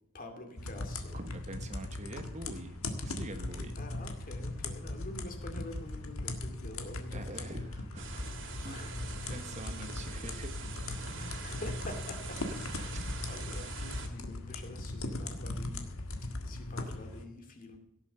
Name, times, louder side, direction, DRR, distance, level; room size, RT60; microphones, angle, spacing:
voice 1, 0.1-1.2 3.8-7.7 8.6-8.9 11.1-15.9 16.4-17.8, left 1 dB, 40° left, 4 dB, 2.4 m, -47 dB
sound 1, 0.6-17.2, left 2 dB, 65° left, 1.7 m, -39 dB
voice 2, 1.1-3.8 7.1-8.3 8.6-8.8 9.3-10.6 11.0-11.4 12.9-13.0, right 2 dB, 30° right, 8 dB, 1.1 m, -45 dB
sound 2, 8.0-14.1, right 4 dB, 55° right, 2.3 m, -44 dB
17.0 x 7.2 x 6.6 m, 0.83 s
head